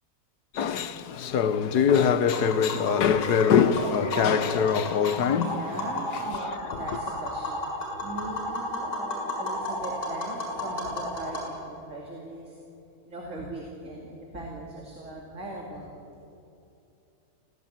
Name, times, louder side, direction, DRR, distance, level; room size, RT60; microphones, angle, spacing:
voice 1, 0.5-5.6 6.1-6.8, left 7 dB, 85° left, 1.6 m, -23 dB
Tap, 2.2-11.4, left 1 dB, 55° left, 7.3 m, -33 dB
voice 2, 5.1-12.6 13.1-15.9, right 1 dB, 50° right, 3.0 m, -39 dB
26.5 x 16.5 x 8.8 m
omnidirectional pair, 1.7 m